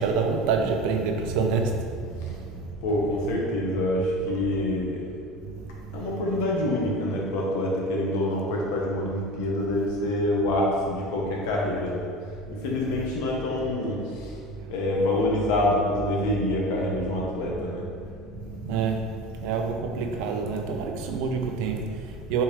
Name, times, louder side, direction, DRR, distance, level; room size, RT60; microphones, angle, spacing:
voice 1, 0.0-2.8 5.4-6.1 12.5-12.7 14.6-14.7 17.1-22.4, right 5 dB, 75° right, 4 dB, 0.5 m, -28 dB
voice 2, 2.8-5.0 5.9-12.1 12.6-14.3 14.7-17.8, left 1 dB, 80° left, -2 dB, 0.9 m, -26 dB
4.3 x 3.5 x 3.1 m, 2.3 s
cardioid pair, 135°, 0 cm